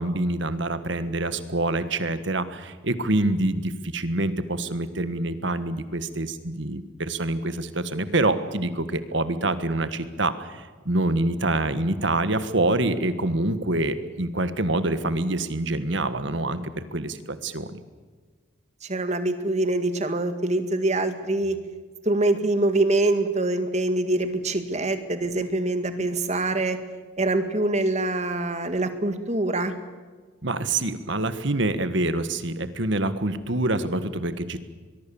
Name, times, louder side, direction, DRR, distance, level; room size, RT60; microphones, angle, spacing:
voice 1, 0.0-17.8 30.4-34.6, right 2 dB, 60° right, 12 dB, 1.5 m, -26 dB
voice 2, 18.8-21.6 22.1-26.8 27.2-29.7, right 2 dB, 35° right, 9 dB, 1.9 m, -24 dB
23.5 x 22.0 x 7.1 m, 1.4 s
head